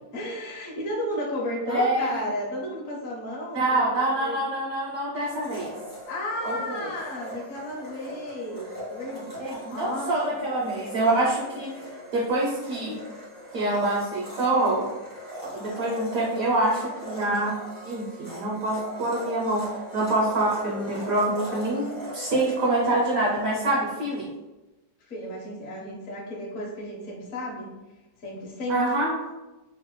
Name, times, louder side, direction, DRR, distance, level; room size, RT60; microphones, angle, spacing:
voice 1, 0.1-4.4 6.1-10.1 25.1-27.7 28.2-28.8, left 1 dB, 60° left, -4 dB, 1.0 m, -33 dB
voice 2, 1.7-2.2 3.5-5.7 6.4-6.9 9.4-11.8 12.1-13.0 13.5-14.9 15.4-17.6 17.9-24.3 28.7-29.2, right 2 dB, 70° right, -4 dB, 0.8 m, -26 dB
Domestic sounds home sounds, 5.3-24.1, equal, 30° left, 0.3 m, -40 dB
3.2 x 2.0 x 2.9 m, 1.1 s
omnidirectional pair, 1.9 m